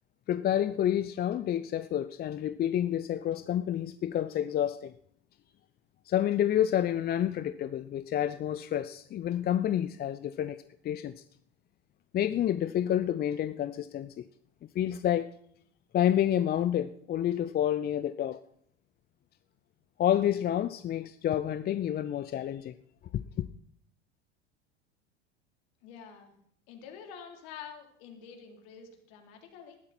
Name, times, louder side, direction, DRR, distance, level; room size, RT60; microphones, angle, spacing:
voice 1, 0.3-4.9 6.1-10.6 10.8-11.1 12.1-14.2 14.7-15.3 15.9-18.4 20.0-22.7, left 11 dB, 30° left, 0.6 m, -29 dB
voice 2, 25.8-26.3 26.7-29.8, left 7 dB, 55° left, 3.8 m, -47 dB
19.5 x 12.5 x 4.4 m
figure-of-eight pair, 80°, 34 cm